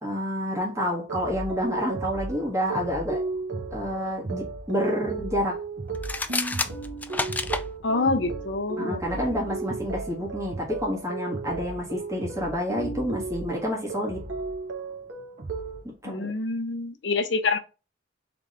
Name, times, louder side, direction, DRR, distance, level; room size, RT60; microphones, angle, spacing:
voice 1, 0.0-3.2 3.7-5.6 8.8-14.2 16.0-16.3, equal, 15° right, 1.6 m, -29 dB
sound 1, 1.0-15.8, right 4 dB, 80° right, 1.0 m, -36 dB
sound 2, 1.1-15.9, right 1 dB, 45° right, 0.7 m, -40 dB
sound 3, 5.9-7.7, left 3 dB, 10° left, 0.3 m, -29 dB
voice 2, 7.8-9.0 16.0-17.6, left 3 dB, 70° left, 0.7 m, -26 dB
3.9 x 3.4 x 3.2 m
head